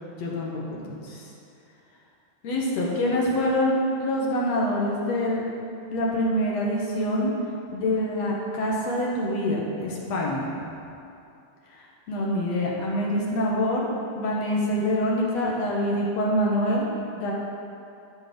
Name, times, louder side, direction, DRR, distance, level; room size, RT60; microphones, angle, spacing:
voice 1, 0.2-1.2 2.4-5.4 5.9-7.3 7.7-10.5 11.7-13.9 14.2-16.9 17.2-17.3, left 1 dB, 60° left, -3 dB, 2.2 m, -25 dB
12.0 x 7.0 x 5.2 m, 2.6 s
omnidirectional pair, 3.8 m